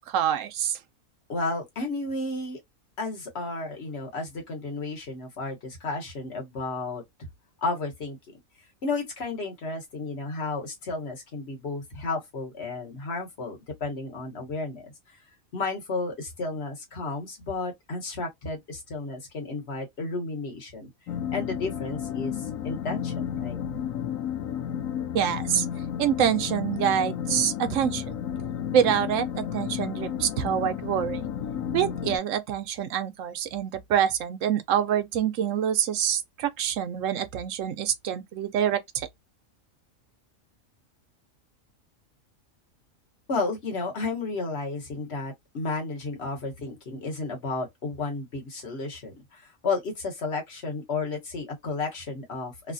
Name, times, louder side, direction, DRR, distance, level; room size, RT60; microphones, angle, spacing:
voice 1, 0.1-0.8 25.1-25.6 26.0-28.0 28.7-31.2 31.7-39.1, right 9 dB, 75° right, 0.9 m, -26 dB
voice 2, 1.3-2.6 3.0-7.3 7.6-8.2 8.8-15.2 15.5-20.9 21.3-23.6 43.3-52.7, left 3 dB, 55° left, 1.3 m, -32 dB
sound 1, 21.1-32.2, left 9 dB, 85° left, 1.0 m, -32 dB
3.2 x 2.1 x 2.5 m
omnidirectional pair, 1.4 m